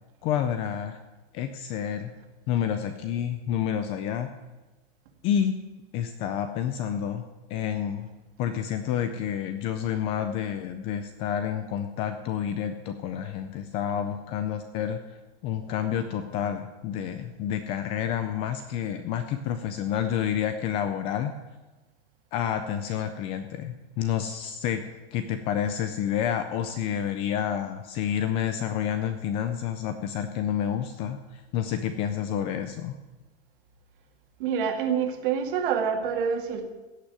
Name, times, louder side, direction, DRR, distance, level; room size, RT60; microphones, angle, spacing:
voice 1, 0.2-1.0 1.3-2.1 2.5-4.3 5.2-5.5 5.9-7.2 7.5-8.1 8.4-15.0 15.4-21.3 22.3-32.9, left 9 dB, 20° left, 9 dB, 0.3 m, -29 dB
voice 2, 34.4-36.7, right 7 dB, 50° right, 5 dB, 2.2 m, -27 dB
16.5 x 6.1 x 9.4 m, 1.2 s
supercardioid pair, 160°, 33 cm